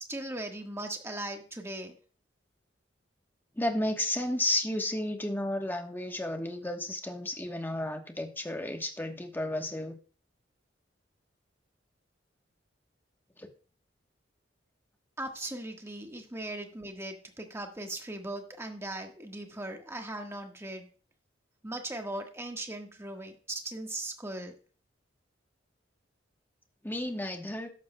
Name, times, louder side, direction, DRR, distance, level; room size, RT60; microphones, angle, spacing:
voice 1, 0.1-1.9 15.2-20.9 21.6-24.5, right 1 dB, 15° right, 3 dB, 1.5 m, -39 dB
voice 2, 3.6-10.0 13.4-13.5 26.8-27.7, left 1 dB, 10° left, 4 dB, 1.1 m, -32 dB
13.5 x 11.0 x 2.2 m, 0.39 s
head